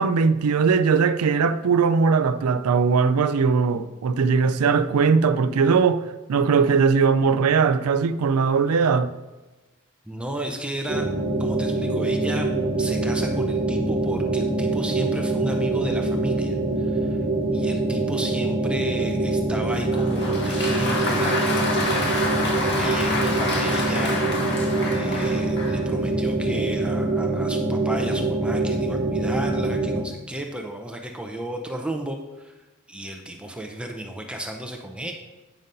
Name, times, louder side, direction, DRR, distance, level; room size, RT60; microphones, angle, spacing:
voice 1, 0.0-9.1, right 5 dB, 85° right, 0.4 m, -20 dB
voice 2, 10.1-11.1 11.4-12.5 12.8-17.2 17.5-22.2 22.5-32.5 32.9-35.1, right 1 dB, 5° right, 0.6 m, -34 dB
sound 1, 10.9-30.0, right 2 dB, 25° right, 0.9 m, -24 dB
Applause, 19.7-25.9, left 2 dB, 55° left, 1.5 m, -28 dB
9.0 x 3.9 x 5.4 m
head